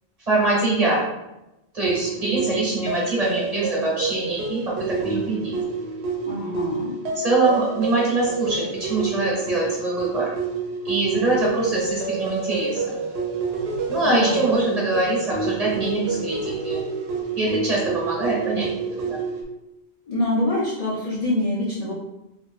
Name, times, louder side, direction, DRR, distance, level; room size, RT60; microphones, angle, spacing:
voice 1, 0.3-1.1 1.7-4.6 4.9-5.5 7.1-10.3 10.8-13.0 13.9-16.8 17.3-19.2, right 2 dB, 35° right, -5 dB, 1.2 m, -23 dB
sound 1, 1.8-19.4, right 4 dB, 80° right, 0.9 m, -28 dB
voice 2, 6.2-7.0 14.0-14.8 20.1-21.9, left 1 dB, 45° left, -7 dB, 0.5 m, -25 dB
3.3 x 3.0 x 2.4 m, 0.92 s
omnidirectional pair, 1.1 m